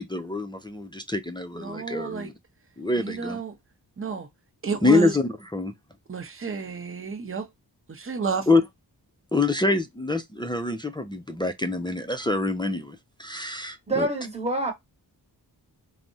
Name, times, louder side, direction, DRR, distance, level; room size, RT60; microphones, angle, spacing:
voice 1, 0.0-2.3 2.8-3.4 4.8-5.7 8.5-8.6 9.3-14.1, left 3 dB, 10° left, 0.4 m, -25 dB
voice 2, 1.6-2.3 3.0-3.6 4.0-4.3 4.6-5.2 6.1-7.5 7.9-8.5, right 5 dB, 30° right, 0.8 m, -30 dB
voice 3, 13.9-14.7, right 2 dB, 15° right, 1.2 m, -26 dB
3.3 x 2.0 x 2.6 m
cardioid pair, 40°, 43 cm